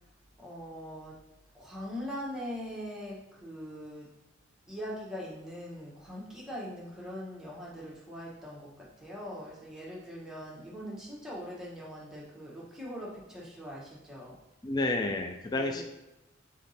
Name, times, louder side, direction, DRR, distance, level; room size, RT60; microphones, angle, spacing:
voice 1, 0.4-1.2 1.5-4.1 4.7-14.4 15.5-15.8, equal, 5° right, -6 dB, 1.1 m, -41 dB
voice 2, 14.6-15.8, left 2 dB, 20° left, 5 dB, 0.3 m, -30 dB
3.7 x 3.5 x 4.0 m, 0.98 s
head